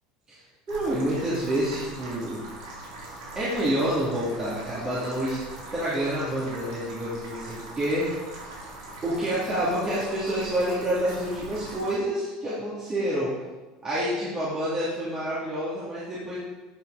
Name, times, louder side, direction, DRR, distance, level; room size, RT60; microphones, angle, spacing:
voice 1, 0.7-2.4 3.3-5.4 5.7-8.1 9.0-13.3 13.8-16.4, right 1 dB, 25° right, -9 dB, 3.0 m, -28 dB
sound 1, 0.7-12.0, right 2 dB, 85° right, 3.0 m, -41 dB
10.0 x 6.1 x 4.3 m, 1.2 s
supercardioid pair, 105°, 3 cm